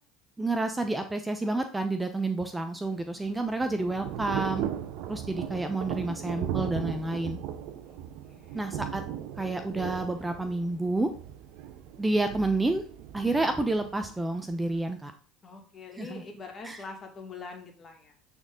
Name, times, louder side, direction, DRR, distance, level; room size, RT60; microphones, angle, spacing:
voice 1, 0.4-4.6 5.1-7.4 8.5-9.0 9.4-11.1 12.0-12.8 13.1-15.1 16.0-16.2 16.6-16.8, right 2 dB, 10° right, 7 dB, 0.8 m, -29 dB
Thunder / Rain, 2.9-14.8, right 10 dB, 65° right, 0.8 m, -37 dB
voice 2, 7.9-8.7 15.4-18.2, left 4 dB, 35° left, 3 dB, 2.2 m, -44 dB
8.9 x 4.3 x 3.9 m, 0.42 s
hypercardioid pair, 75°, 0 cm